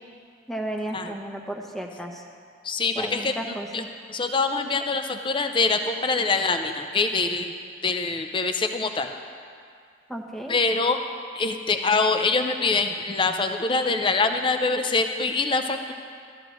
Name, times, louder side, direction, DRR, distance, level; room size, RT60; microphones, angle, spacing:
voice 1, 0.5-2.2 3.0-3.9 10.1-10.5, right 1 dB, ahead, 1 dB, 0.8 m, -33 dB
voice 2, 2.6-7.6 7.8-9.1 10.5-11.0 11.4-15.9, left 3 dB, 25° left, 7 dB, 0.5 m, -24 dB
13.5 x 13.5 x 3.0 m, 2.2 s
head